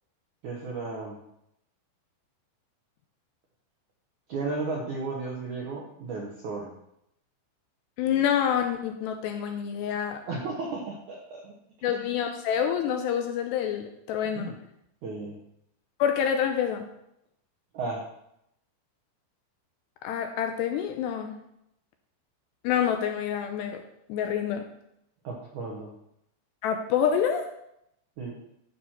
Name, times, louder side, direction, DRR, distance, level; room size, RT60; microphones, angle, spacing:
voice 1, 0.4-1.2 4.3-6.7 10.3-11.5 11.8-12.1 14.3-14.6 15.0-15.4 17.7-18.0 25.2-25.9 28.2-28.3, right 3 dB, 75° right, -2 dB, 1.8 m, -34 dB
voice 2, 8.0-10.2 11.8-14.6 16.0-16.9 20.0-21.4 22.6-23.8 24.1-24.7 26.6-27.5, left 8 dB, 85° left, 5 dB, 2.6 m, -27 dB
12.0 x 6.2 x 4.4 m, 0.79 s
omnidirectional pair, 5.3 m